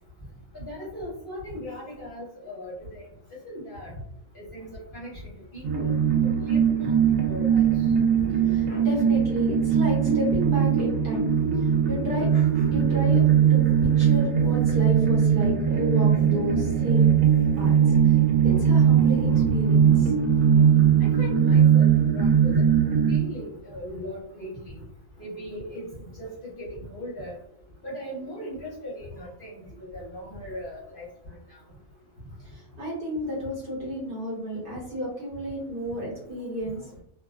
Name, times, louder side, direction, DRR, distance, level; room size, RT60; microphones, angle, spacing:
voice 1, 0.5-3.0 3.4-3.9 4.3-5.1 5.5-5.9 6.2-6.9 7.2-7.7 8.2-8.3 8.7-8.8 12.3-12.7 21.0-22.6 23.1-24.7 25.2-25.9 26.2-27.4 27.8-29.6 29.9-31.0, equal, 45° left, -6 dB, 0.8 m, -38 dB
sound 1, 5.6-23.2, right 8 dB, 80° right, 1.0 m, -20 dB
voice 2, 8.1-11.3 11.9-12.3 12.7-13.2 13.5-17.2 17.6-17.7 18.4-20.2 32.5-36.8, equal, 45° right, -6 dB, 1.1 m, -31 dB
2.4 x 2.2 x 2.3 m, 0.74 s
omnidirectional pair, 1.4 m